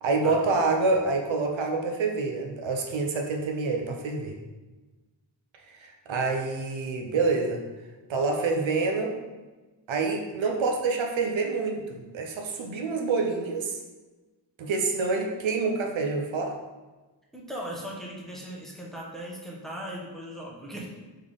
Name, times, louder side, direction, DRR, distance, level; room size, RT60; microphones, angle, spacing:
voice 1, 0.0-4.4 5.8-7.6 8.1-9.1 9.9-13.8 14.6-16.6, right 3 dB, 90° right, 2 dB, 0.7 m, -27 dB
voice 2, 17.3-20.9, equal, ahead, -3 dB, 0.9 m, -38 dB
3.6 x 3.3 x 3.8 m, 1.2 s
wide cardioid pair, 75°, 45 cm